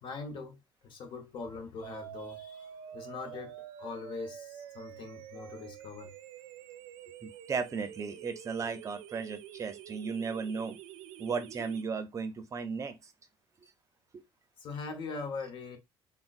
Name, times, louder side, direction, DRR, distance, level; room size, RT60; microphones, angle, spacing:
voice 1, 0.0-6.1 14.6-15.8, left 4 dB, 55° left, 0.9 m, -42 dB
sound 1, 1.8-11.8, right 11 dB, 85° right, 0.4 m, -47 dB
voice 2, 7.2-10.8 11.2-13.1 14.1-14.2, right 5 dB, 35° right, 0.6 m, -35 dB
3.8 x 2.1 x 2.4 m
cardioid pair, 105°, 10 cm